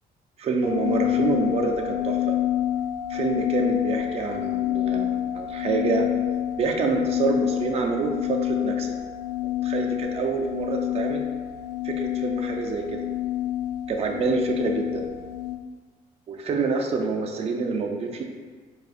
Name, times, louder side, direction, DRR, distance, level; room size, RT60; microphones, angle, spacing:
voice 1, 0.4-2.4 3.1-6.1 6.6-9.0 9.4-11.2 11.8-13.0 13.9-15.1 16.3-18.2, right 4 dB, 40° right, 2 dB, 0.4 m, -27 dB
sound 1, 0.6-15.6, left 12 dB, 80° left, 0.4 m, -27 dB
4.8 x 2.4 x 2.4 m, 1.5 s
cardioid pair, 110°, 17 cm